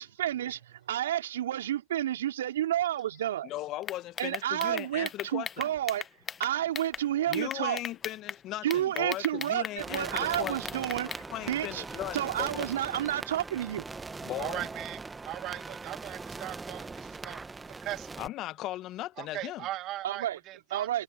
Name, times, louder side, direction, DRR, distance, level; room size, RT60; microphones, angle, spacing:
voice 1, 0.0-3.5 4.2-6.0 6.4-7.8 8.6-11.8 12.1-13.8 20.0-20.4 20.7-21.0, right 12 dB, 75° right, 4.0 m, -30 dB
voice 2, 3.4-5.7 7.3-10.6 11.3-12.5 14.2-14.7 18.2-19.7, left 15 dB, 45° left, 1.1 m, -37 dB
sound 1, 3.8-7.0 7.3-8.4 8.7-11.2, left 7 dB, 25° left, 1.1 m, -38 dB
sound 2, 9.8-18.3, right 3 dB, 15° right, 1.5 m, -41 dB
voice 3, 14.4-17.4 17.8-18.1 19.2-20.9, right 15 dB, 45° right, 1.7 m, -39 dB
hypercardioid pair, 95°, 0 cm